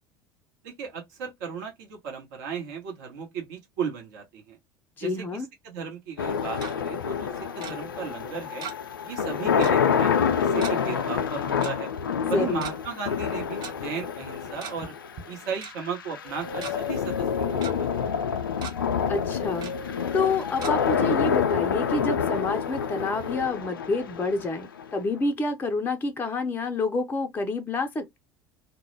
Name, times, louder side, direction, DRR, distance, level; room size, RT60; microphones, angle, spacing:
voice 1, 0.6-4.6 5.0-8.7 9.0-11.9 12.3-14.9 15.3-18.1, right 6 dB, 60° right, 1.0 m, -36 dB
voice 2, 5.0-5.5 12.2-12.6 19.1-28.2, left 3 dB, 15° left, 0.5 m, -28 dB
sound 1, 6.2-25.2, left 7 dB, 75° left, 0.4 m, -27 dB
Tick-tock, 6.3-6.7 7.6-7.7 8.6-9.0 9.2-9.3 9.6-9.8 10.6-10.7 11.6-11.7 12.5-12.7 13.6-13.7 14.4-14.9 15.2-15.3 15.6-15.7 16.3-16.7 17.2-17.7 18.1-18.3 18.6-18.7 19.6-19.7 20.6-20.7, right 7 dB, 40° right, 0.6 m, -38 dB
2.3 x 2.1 x 3.1 m
figure-of-eight pair, 70°, 11 cm